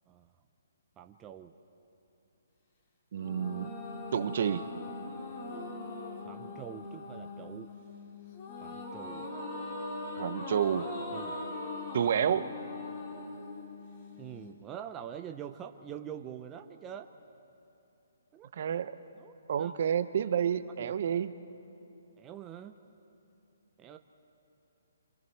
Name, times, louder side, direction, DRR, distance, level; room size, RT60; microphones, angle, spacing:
voice 1, 1.0-1.5 6.3-7.7 8.6-9.3 11.1-11.4 14.2-17.1 18.3-18.5 19.2-19.8 20.8-21.2 22.2-22.8 23.8-24.0, right 9 dB, 15° right, 6 dB, 0.6 m, -45 dB
sound 1, 3.1-14.5, left 2 dB, 35° left, 2.6 m, -41 dB
voice 2, 3.1-3.7 4.1-4.6 10.2-10.9 11.9-12.5 18.5-18.9 19.5-21.3, right 8 dB, 50° right, 12 dB, 0.7 m, -29 dB
26.5 x 26.0 x 4.6 m, 2.9 s
hypercardioid pair, 160°, 0 cm